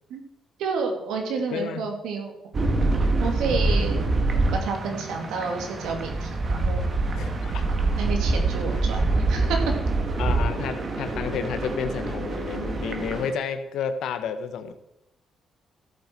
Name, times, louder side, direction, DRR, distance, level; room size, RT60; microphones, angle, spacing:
voice 1, 0.6-2.3 3.2-4.1 4.5-6.9 8.0-9.6, right 4 dB, 85° right, 3 dB, 2.4 m, -30 dB
voice 2, 1.5-1.9 7.1-7.7 8.7-8.8 10.2-14.7, left 7 dB, 80° left, 10 dB, 1.1 m, -31 dB
sound 1, 2.5-13.3, right 2 dB, 40° right, 1.8 m, -25 dB
14.0 x 8.0 x 4.5 m, 0.85 s
cardioid pair, 90°, 0 cm